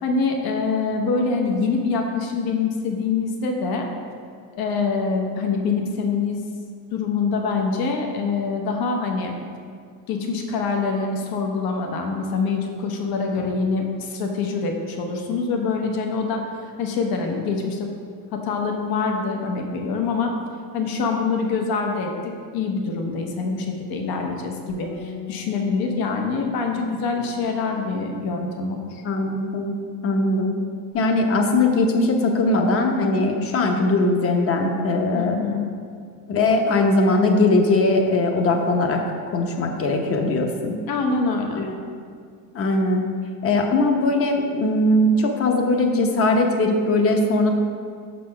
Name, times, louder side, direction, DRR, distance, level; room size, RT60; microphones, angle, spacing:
voice 1, 0.0-3.9 4.5-6.4 6.9-9.3 10.1-16.5 16.8-17.9 18.3-20.3 20.7-29.0 35.1-35.7 40.9-41.6, left 4 dB, 70° left, 2 dB, 1.0 m, -25 dB
Bass guitar, 24.7-30.9, left 8 dB, 85° left, 1.8 m, -42 dB
voice 2, 29.0-29.7 30.0-30.5 30.9-35.4 36.3-39.0 39.3-40.7 41.6-41.7 42.5-43.0 43.4-47.5, left 2 dB, 35° left, 3 dB, 0.8 m, -20 dB
6.4 x 4.2 x 5.7 m, 2.2 s
cardioid pair, 135°, 38 cm